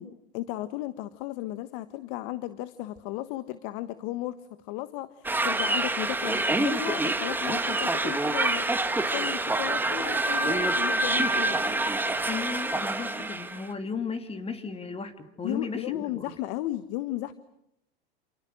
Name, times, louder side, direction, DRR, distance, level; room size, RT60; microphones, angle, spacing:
voice 1, 0.0-4.4 4.6-11.8 15.4-17.3, left 15 dB, 55° left, 13 dB, 1.4 m, -35 dB
sound 1, 5.2-13.7, right 2 dB, 5° right, 1.8 m, -27 dB
voice 2, 12.3-16.3, left 5 dB, 20° left, 9 dB, 2.7 m, -35 dB
28.5 x 28.5 x 6.4 m, 0.79 s
hypercardioid pair, 115°, 31 cm